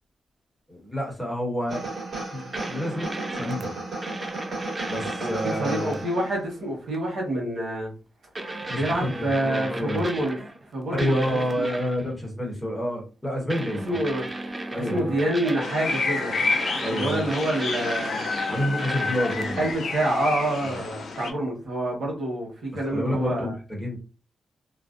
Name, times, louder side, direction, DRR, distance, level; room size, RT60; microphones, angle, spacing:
voice 1, 0.7-1.8 2.3-3.7 4.9-6.0 8.5-10.0 11.0-14.0 14.7-15.1 16.8-17.3 18.5-19.7 20.6-20.7 22.8-24.0, equal, 15° left, 1.1 m, -29 dB
sound 1, 1.7-6.5, right 2 dB, 45° right, 1.3 m, -34 dB
sound 2, 2.5-3.6 4.0-6.3 6.9-7.1 8.3-10.7 11.0-12.1 13.5-19.7, right 2 dB, 25° right, 0.4 m, -35 dB
voice 2, 5.2-7.9 8.7-10.4 10.7-11.7 13.8-14.3 14.8-16.4 16.9-18.2 19.6-23.5, right 1 dB, 75° right, 1.1 m, -27 dB
sound 3, 15.6-21.3, left 4 dB, 75° left, 0.4 m, -29 dB
2.5 x 2.1 x 2.4 m
wide cardioid pair, 115°, 0 cm